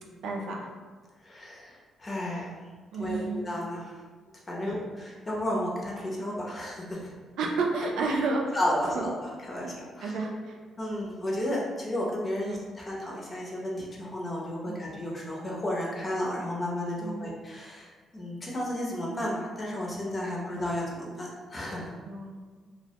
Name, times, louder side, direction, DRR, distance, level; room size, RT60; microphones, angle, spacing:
voice 1, 0.2-0.7 2.9-3.4 4.6-4.8 7.4-8.6 8.9-9.1 9.6-9.7 10.0-10.6 12.4-12.6 14.6-14.9 17.0-17.4 20.5-20.6 22.0-22.6, right 3 dB, 80° right, 0 dB, 0.4 m, -31 dB
voice 2, 1.2-2.6 3.0-4.0 4.5-7.1 8.5-10.1 10.8-22.0, left 1 dB, 25° left, -4 dB, 0.6 m, -33 dB
2.1 x 2.1 x 2.8 m, 1.4 s
cardioid pair, 90°, 0 cm